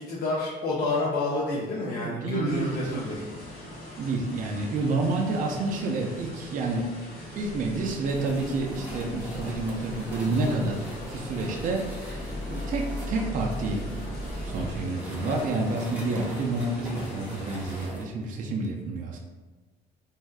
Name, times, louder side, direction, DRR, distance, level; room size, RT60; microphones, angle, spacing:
voice 1, 0.0-3.2, left 2 dB, 65° left, -5 dB, 0.6 m, -29 dB
voice 2, 2.0-3.2 4.0-7.0 7.3-14.2 14.4-19.2, right 3 dB, 50° right, 1 dB, 0.4 m, -29 dB
sound 1, 2.4-17.9, left 1 dB, 80° left, 1.3 m, -42 dB
sound 2, 7.4-14.8, left 1 dB, 25° left, 0.7 m, -39 dB
sound 3, 8.1-18.0, equal, 10° right, 1.0 m, -40 dB
3.3 x 2.6 x 2.3 m, 1.3 s
cardioid pair, 110°, 17 cm